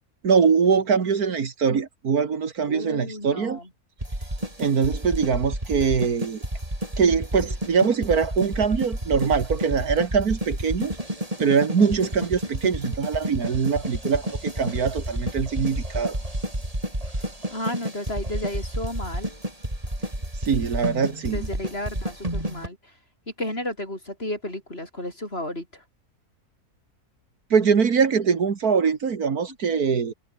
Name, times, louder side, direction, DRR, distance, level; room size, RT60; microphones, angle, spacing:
voice 1, 0.2-3.6 4.6-6.4 7.0-10.9 11.4-16.2 20.4-21.5 27.5-30.1, right 6 dB, 70° right, 2.2 m, -22 dB
voice 2, 2.7-3.7 17.5-19.3 21.3-22.8 23.4-25.8, left 1 dB, 40° left, 8.3 m, -32 dB
sound 1, 4.0-22.7, right 1 dB, 20° right, 6.9 m, -30 dB
omnidirectional pair, 1.6 m